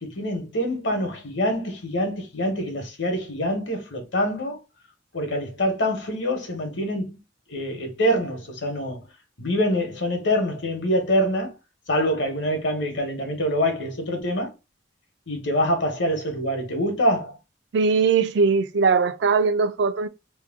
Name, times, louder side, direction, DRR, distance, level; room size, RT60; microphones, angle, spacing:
voice 1, 0.0-4.6 5.1-7.2 7.5-9.0 9.4-11.5 11.9-14.5 15.3-17.4, equal, 75° left, 1.1 m, -25 dB
voice 2, 17.7-20.1, right 5 dB, 65° right, 0.4 m, -20 dB
3.0 x 2.1 x 3.5 m
head